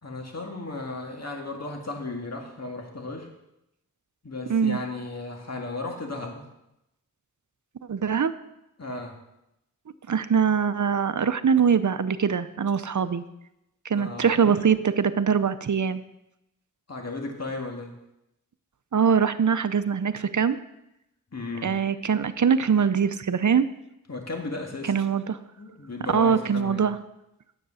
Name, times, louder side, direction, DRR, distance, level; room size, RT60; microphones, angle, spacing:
voice 1, 0.0-3.3 4.2-6.4 8.8-9.2 13.9-14.7 16.9-17.9 21.3-21.8 24.1-25.0 25.6-26.9, left 2 dB, 50° left, 1 dB, 2.0 m, -35 dB
voice 2, 7.9-8.3 10.1-13.2 13.8-16.0 18.9-20.6 21.6-23.7 24.9-25.4 26.1-27.0, right 7 dB, 60° right, 12 dB, 0.7 m, -23 dB
9.9 x 8.0 x 6.4 m, 0.87 s
wide cardioid pair, 65°, 33 cm